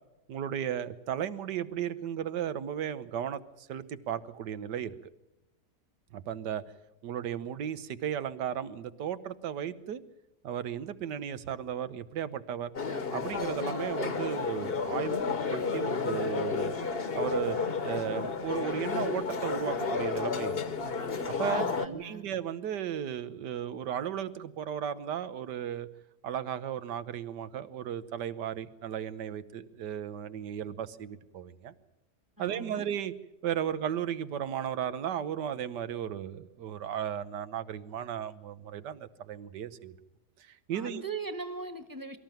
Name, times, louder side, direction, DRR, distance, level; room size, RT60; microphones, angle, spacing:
voice 1, 0.3-4.9 6.1-6.6 7.0-10.0 10.4-12.7 13.1-16.7 17.1-17.6 17.8-20.6 21.4-25.9 26.2-31.7 32.4-33.1 33.4-39.9 40.4-41.0, right 9 dB, 85° right, 13 dB, 1.6 m, -35 dB
sound 1, 12.7-21.9, left 4 dB, 40° left, 1.3 m, -31 dB
voice 2, 21.5-22.2 32.4-32.8 40.7-42.2, right 4 dB, 15° right, 9 dB, 1.5 m, -39 dB
24.0 x 13.5 x 9.1 m, 0.93 s
omnidirectional pair, 1.8 m